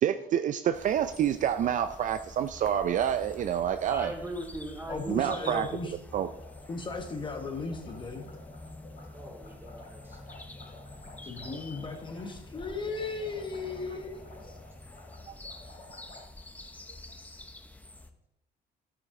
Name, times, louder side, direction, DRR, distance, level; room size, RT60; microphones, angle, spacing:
voice 1, 0.0-4.1 5.1-5.7 6.1-6.3 15.3-15.4, right 9 dB, 50° right, 10 dB, 0.4 m, -28 dB
sound 1, 0.7-18.1, left 2 dB, 10° left, 0.8 m, -47 dB
voice 2, 3.9-5.6 9.1-10.2 11.2-11.3, right 1 dB, 15° right, 2 dB, 2.6 m, -40 dB
voice 3, 4.9-6.0 6.7-8.3 11.2-14.6, left 3 dB, 30° left, 4 dB, 1.2 m, -36 dB
sound 2, 6.3-16.2, left 2 dB, 60° left, 3.8 m, -52 dB
11.0 x 8.9 x 3.7 m, 0.88 s
cardioid pair, 110°, 17 cm